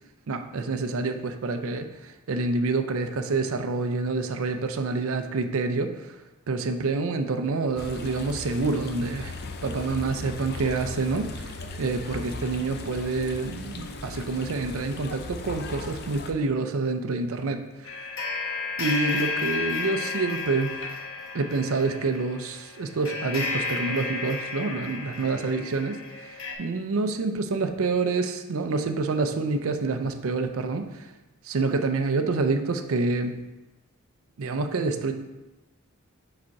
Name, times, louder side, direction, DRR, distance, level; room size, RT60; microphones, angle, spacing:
voice 1, 0.3-6.1 6.5-11.5 11.8-18.1 18.8-20.8 21.3-26.0 26.3-31.1 31.4-33.4 34.4-35.1, right 3 dB, 65° right, 6 dB, 0.5 m, -27 dB
sound 1, 7.8-16.3, left 3 dB, 50° left, 0.5 m, -38 dB
sound 2, 17.8-26.5, left 3 dB, 65° left, 1.0 m, -32 dB
5.0 x 4.2 x 4.6 m, 1.1 s
head